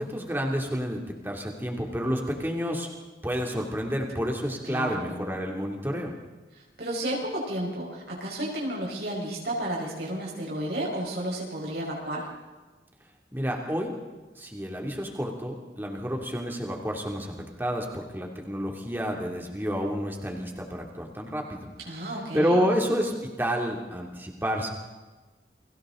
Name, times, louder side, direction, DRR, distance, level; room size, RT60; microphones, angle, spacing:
voice 1, 0.0-2.9 3.2-6.1 13.3-13.9 14.3-21.7 22.0-22.1 22.3-24.7, equal, 10° right, 0 dB, 2.9 m, -29 dB
voice 2, 4.7-5.1 6.5-12.3 21.8-22.7, right 1 dB, 65° right, -3 dB, 5.2 m, -32 dB
29.5 x 23.5 x 3.9 m, 1.2 s
head